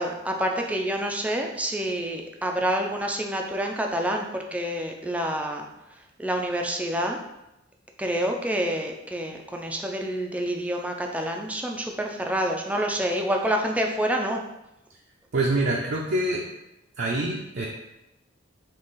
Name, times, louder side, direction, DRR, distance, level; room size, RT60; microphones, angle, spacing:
voice 1, 0.0-5.7 6.2-7.2 8.0-14.4, right 1 dB, 5° right, 2 dB, 0.4 m, -27 dB
voice 2, 15.3-16.5 17.0-17.7, right 2 dB, 60° right, -3 dB, 0.5 m, -25 dB
3.7 x 2.8 x 4.0 m, 0.91 s
head